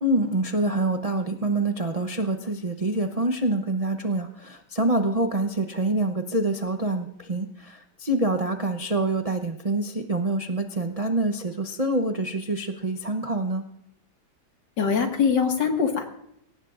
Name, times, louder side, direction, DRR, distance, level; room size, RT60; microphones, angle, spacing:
voice 1, 0.0-13.7, right 2 dB, 60° right, 5 dB, 0.3 m, -26 dB
voice 2, 14.8-16.1, left 6 dB, 60° left, 3 dB, 2.5 m, -22 dB
22.5 x 18.5 x 2.5 m, 0.77 s
omnidirectional pair, 2.1 m